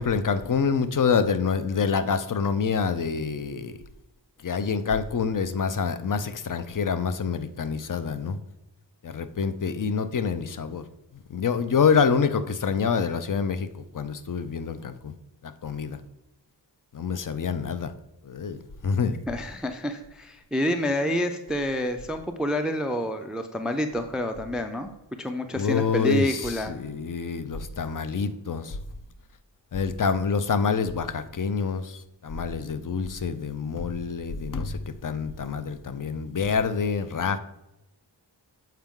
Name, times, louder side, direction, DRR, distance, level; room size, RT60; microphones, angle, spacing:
voice 1, 0.0-3.8 4.4-8.4 9.0-10.8 11.1-13.7 13.9-15.1 15.4-16.0 16.9-17.9 18.2-19.2 25.5-28.8 29.7-37.4, left 5 dB, 45° left, 11 dB, 0.6 m, -26 dB
voice 2, 19.3-24.9 25.2-26.7, left 1 dB, ahead, 7 dB, 0.4 m, -28 dB
7.4 x 4.5 x 3.7 m, 0.93 s
wide cardioid pair, 60°, 44 cm